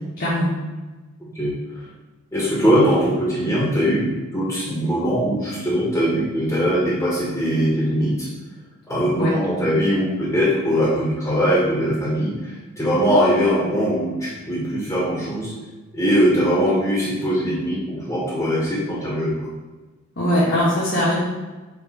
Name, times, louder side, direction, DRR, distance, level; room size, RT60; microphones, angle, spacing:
voice 1, 0.2-0.5 9.2-9.4 20.2-21.1, equal, 60° left, -9 dB, 1.7 m, -20 dB
voice 2, 2.3-8.3 8.9-15.5 15.9-19.5, equal, 15° left, -6 dB, 1.5 m, -21 dB
5.2 x 4.7 x 4.4 m, 1.2 s
head